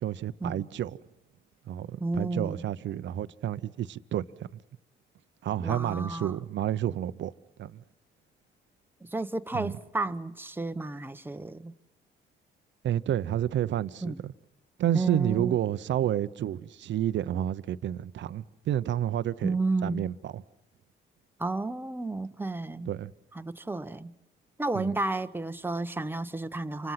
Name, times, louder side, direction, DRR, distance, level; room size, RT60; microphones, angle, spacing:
voice 1, 0.0-1.0 1.7-4.3 5.4-7.3 7.6-7.8 9.5-9.7 12.8-14.3 14.8-19.6 19.8-20.4 22.9-23.1 24.7-24.9, right 11 dB, 65° right, 0.8 m, -30 dB
voice 2, 2.0-2.6 5.6-6.4 9.1-11.7 14.0-14.2 14.9-15.6 19.4-20.1 21.4-22.9 23.3-24.1 24.6-26.9, right 2 dB, 10° right, 1.0 m, -32 dB
28.0 x 25.0 x 5.8 m
cardioid pair, 90°, 20 cm